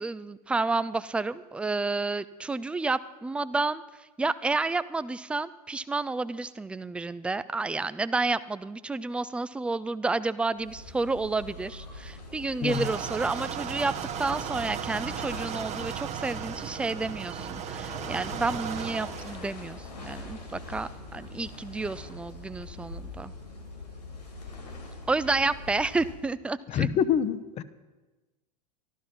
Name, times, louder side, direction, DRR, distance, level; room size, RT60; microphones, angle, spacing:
voice 1, 0.0-13.9 14.2-23.3 25.1-26.9, right 3 dB, 5° right, 15 dB, 0.4 m, -30 dB
sound 1, 10.5-26.4, left 2 dB, 80° left, 3.3 m, -43 dB
sound 2, 12.7-19.4, right 9 dB, 35° right, 0.9 m, -36 dB
voice 2, 26.7-27.6, left 8 dB, 30° left, 15 dB, 0.8 m, -26 dB
13.0 x 12.5 x 5.7 m, 1.2 s
figure-of-eight pair, 90°, 21 cm